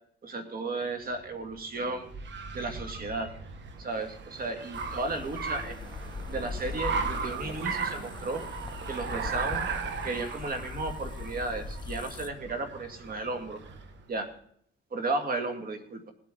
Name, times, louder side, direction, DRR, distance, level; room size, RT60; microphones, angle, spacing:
voice 1, 0.2-2.1 2.5-3.3 3.8-5.8 6.3-8.4 8.9-9.7 10.0-13.6 14.1-14.3 14.9-16.1, right 3 dB, 50° right, 6 dB, 2.1 m, -34 dB
Car, 1.1-14.0, right 5 dB, 65° right, 1.4 m, -37 dB
sound 1, 4.7-12.3, left 4 dB, 20° left, 0.9 m, -40 dB
19.0 x 8.3 x 3.9 m, 0.66 s
cardioid pair, 90°, 20 cm